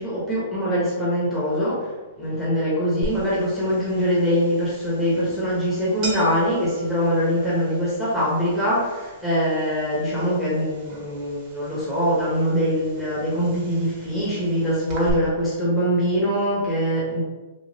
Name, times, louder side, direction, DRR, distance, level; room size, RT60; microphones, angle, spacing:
voice 1, 0.0-17.2, equal, 5° left, -10 dB, 1.0 m, -23 dB
sound 1, 3.0-15.1, right 1 dB, 30° right, 0.9 m, -40 dB
3.0 x 2.6 x 2.7 m, 1.2 s
hypercardioid pair, 150°, 0 cm